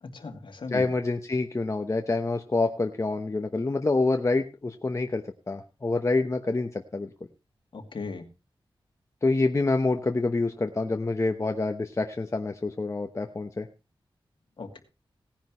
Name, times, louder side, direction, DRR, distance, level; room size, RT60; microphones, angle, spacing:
voice 1, 0.0-0.9 7.7-8.3 14.6-14.8, left 4 dB, 60° left, 5 dB, 2.3 m, -37 dB
voice 2, 0.7-7.1 9.2-13.7, left 3 dB, 30° left, 5 dB, 1.0 m, -27 dB
18.0 x 10.0 x 3.1 m, 0.28 s
wide cardioid pair, 95°, 9 cm